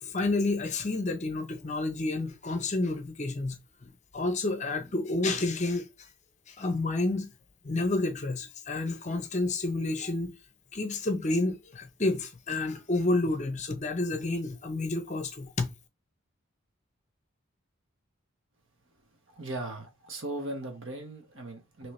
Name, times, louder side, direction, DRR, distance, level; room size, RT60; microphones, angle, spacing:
voice 1, 0.0-5.9 6.5-7.3 7.6-10.3 10.7-15.7, left 2 dB, 35° left, 0.7 m, -30 dB
voice 2, 19.3-21.9, right 2 dB, 65° right, 1.2 m, -38 dB
4.4 x 3.0 x 3.2 m
head